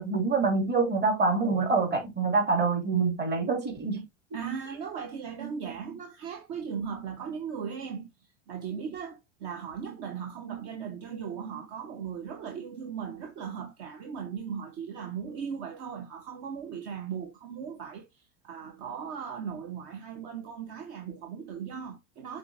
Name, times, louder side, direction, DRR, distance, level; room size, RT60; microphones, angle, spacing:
voice 1, 0.0-4.0, right 4 dB, 30° right, 3.1 m, -26 dB
voice 2, 4.3-8.1 8.5-18.1 18.4-22.4, right 7 dB, 50° right, 1.4 m, -37 dB
6.7 x 4.9 x 2.8 m
hypercardioid pair, 95°, 36 cm